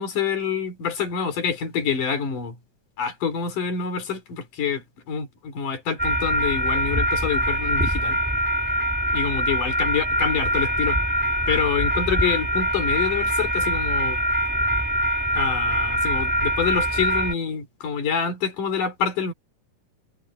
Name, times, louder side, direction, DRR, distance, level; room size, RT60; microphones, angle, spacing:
voice 1, 0.0-2.5 3.0-8.2 9.1-11.0 11.5-14.2 15.3-19.3, left 6 dB, 85° left, 5.1 m, -26 dB
sound 1, 6.0-17.3, equal, 5° right, 1.5 m, -23 dB
omnidirectional pair, 3.6 m